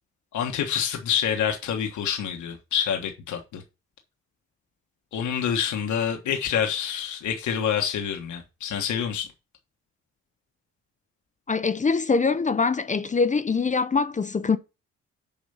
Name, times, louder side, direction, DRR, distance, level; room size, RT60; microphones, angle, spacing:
voice 1, 0.3-3.6 5.1-9.3, left 8 dB, 75° left, 1.4 m, -27 dB
voice 2, 11.5-14.6, left 4 dB, 25° left, 0.7 m, -23 dB
7.2 x 4.3 x 5.6 m
cardioid pair, 90°, 30 cm